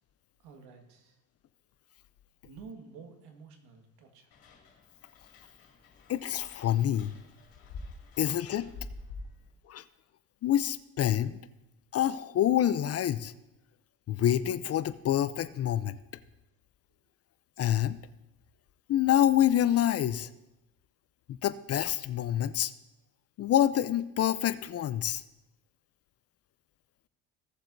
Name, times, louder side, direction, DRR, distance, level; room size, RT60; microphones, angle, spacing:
voice 1, 0.4-1.2 2.4-4.3, right 5 dB, 75° right, 4 dB, 1.7 m, -50 dB
sound 1, 4.3-9.5, left 3 dB, 60° left, 2.4 m, -47 dB
voice 2, 6.1-7.2 8.2-8.7 9.7-9.8 10.4-11.4 11.9-13.3 14.1-16.0 17.6-18.0 18.9-20.3 21.3-22.7 23.4-25.2, left 11 dB, 40° left, 15 dB, 0.5 m, -27 dB
16.5 x 7.3 x 2.6 m, 0.96 s
supercardioid pair, 75°, 38 cm